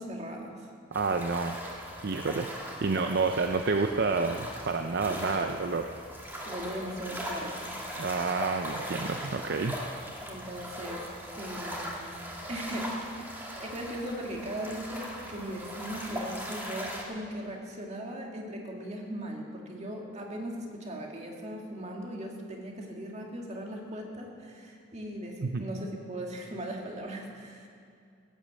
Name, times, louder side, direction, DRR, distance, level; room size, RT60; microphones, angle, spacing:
voice 1, 0.0-0.7 6.4-7.7 10.3-11.0 11.4-12.1 12.5-27.7, right 1 dB, 35° right, 0 dB, 2.1 m, -38 dB
sound 1, 0.9-17.0, equal, 10° right, 2.1 m, -39 dB
voice 2, 0.9-1.6 2.0-2.5 2.8-5.9 8.0-9.8 25.4-25.6, right 4 dB, 60° right, 5 dB, 0.6 m, -29 dB
16.5 x 8.8 x 7.6 m, 2.4 s
head